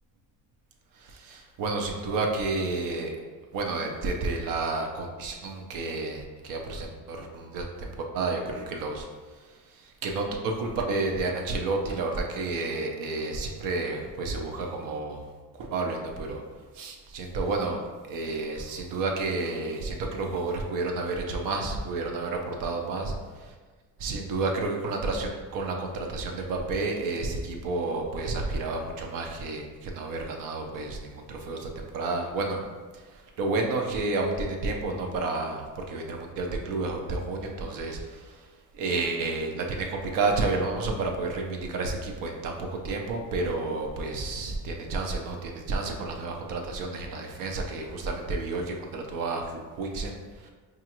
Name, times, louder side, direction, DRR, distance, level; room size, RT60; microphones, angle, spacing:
voice 1, 1.0-3.1 3.5-9.1 9.8-15.2 15.6-16.4 16.7-17.8 18.1-23.1 23.4-23.5 24.0-32.6 33.4-38.4 38.7-50.2 50.4-50.5, right 3 dB, 65° right, 2 dB, 0.6 m, -30 dB
5.0 x 2.4 x 2.9 m, 1.4 s
cardioid pair, 155°, 36 cm